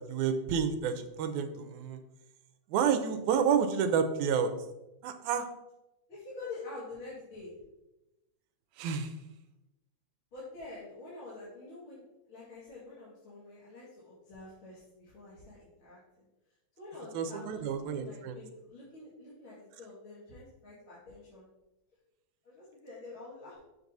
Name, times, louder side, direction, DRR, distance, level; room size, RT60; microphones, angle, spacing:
voice 1, 0.1-2.0 2.7-4.5 5.0-5.5 8.8-9.1 17.1-18.4, right 7 dB, 90° right, 8 dB, 2.0 m, -29 dB
voice 2, 6.1-7.5 10.3-12.0 12.3-16.0 16.8-21.5 22.4-23.6, left 3 dB, 50° left, -9 dB, 2.3 m, -47 dB
7.0 x 5.9 x 2.7 m, 0.96 s
omnidirectional pair, 3.4 m